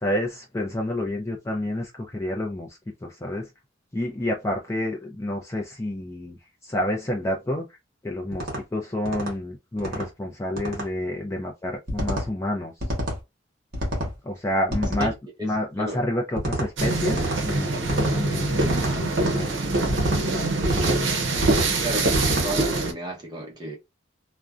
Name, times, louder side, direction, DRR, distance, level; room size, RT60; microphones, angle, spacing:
voice 1, 0.0-3.5 3.9-7.7 8.0-12.8 14.2-15.1 15.4-18.7 19.0-19.5, left 1 dB, 15° left, 0.4 m, -29 dB
sound 1, 8.3-8.6 9.0-9.3 9.8-10.1 10.6-10.9 11.9-12.3 12.8-13.2 13.7-14.1 14.7-15.1 16.4-16.7 17.1-17.4 17.8-18.2 18.6-18.9 19.9-20.2 20.6-20.9 21.4-21.7 22.1-22.5, right 1 dB, 50° right, 1.0 m, -27 dB
voice 2, 15.4-16.0 21.8-23.8, right 1 dB, 20° right, 0.8 m, -33 dB
sound 2, 16.8-22.9, right 2 dB, 75° right, 0.6 m, -24 dB
2.5 x 2.1 x 2.4 m
head